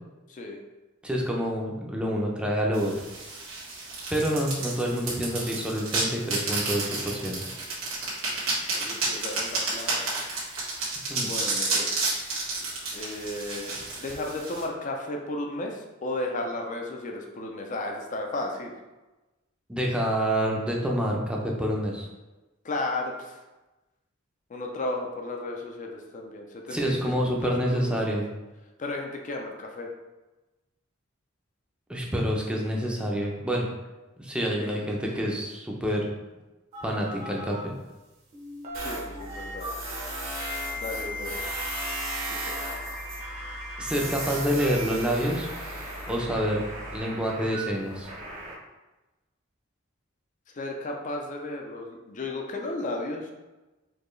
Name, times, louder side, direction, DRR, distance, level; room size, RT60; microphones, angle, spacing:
voice 1, 0.3-0.6 8.7-10.2 11.2-12.0 12.9-18.7 22.6-23.4 24.5-27.5 28.8-29.9 34.6-34.8 35.2-35.4 38.8-39.7 40.8-41.4 42.3-42.5 50.5-53.3, left 2 dB, 40° left, 1 dB, 0.5 m, -34 dB
voice 2, 1.0-3.1 4.1-7.5 11.1-11.3 19.7-22.1 26.7-28.3 31.9-33.7 34.2-36.1 36.8-37.7 43.8-45.5 46.1-46.7 46.9-48.1, equal, 5° right, -2 dB, 0.6 m, -27 dB
sound 1, 2.7-14.6, right 3 dB, 85° right, 1.4 m, -31 dB
sound 2, 36.7-37.6 38.3-39.7 40.4-44.3 44.6-48.6, equal, 35° right, 0.8 m, -39 dB
Tools, 38.7-47.0, right 1 dB, 70° right, 1.2 m, -36 dB
4.4 x 2.8 x 3.1 m, 1.1 s
head